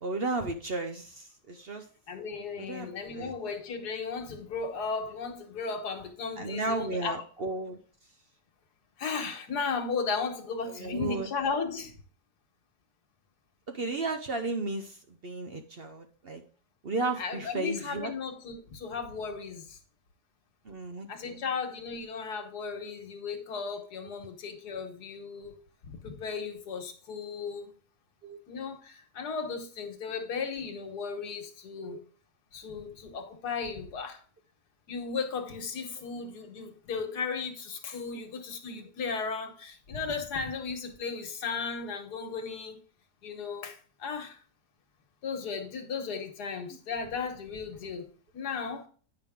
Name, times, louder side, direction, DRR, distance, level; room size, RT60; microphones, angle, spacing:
voice 1, 0.0-1.9 2.6-2.9 3.2-3.3 6.4-7.8 10.7-11.3 13.7-16.4 16.8-18.1 20.6-21.4 28.2-28.4 31.8-32.0, right 3 dB, 50° right, 0.8 m, -34 dB
voice 2, 2.1-7.1 9.0-12.0 17.2-19.8 21.1-25.5 26.0-27.7 28.5-32.0 32.5-34.2 34.9-42.8 43.2-44.4 45.2-48.9, left 5 dB, 85° left, 1.7 m, -35 dB
9.1 x 5.8 x 3.6 m
omnidirectional pair, 1.7 m